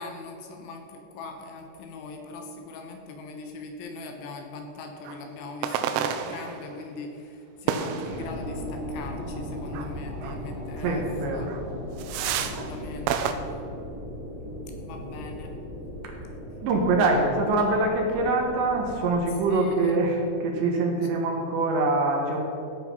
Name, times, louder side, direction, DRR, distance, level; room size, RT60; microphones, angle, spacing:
voice 1, 0.0-11.5 12.2-13.5 14.8-15.5 19.5-20.0, left 3 dB, 75° left, 3 dB, 3.3 m, -40 dB
sound 1, 5.1-5.2 5.6-6.8 7.7-8.5 9.7-9.9 10.2-10.4 10.8-11.0 11.5-11.6 12.0-12.7 13.1-13.3, right 8 dB, 85° right, 3.3 m, -30 dB
sound 2, 8.0-19.4, equal, 10° right, 1.8 m, -37 dB
voice 2, 10.8-11.5 16.0-16.1 16.6-22.4, right 2 dB, 70° right, 1 dB, 3.4 m, -24 dB
15.0 x 8.2 x 5.5 m, 2.7 s
omnidirectional pair, 5.7 m